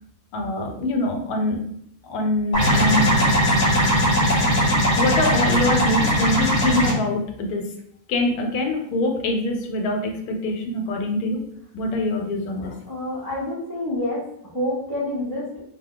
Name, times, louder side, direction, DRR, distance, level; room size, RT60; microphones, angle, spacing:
voice 1, 0.3-1.6 2.0-3.1 5.0-7.6 8.1-11.4 11.7-12.8, left 1 dB, 75° left, 3 dB, 1.0 m, -24 dB
sound 1, 2.5-6.9, equal, 35° left, 0.8 m, -19 dB
voice 2, 12.9-15.6, left 1 dB, 30° right, -7 dB, 0.4 m, -28 dB
2.7 x 2.2 x 3.7 m, 0.70 s
omnidirectional pair, 1.7 m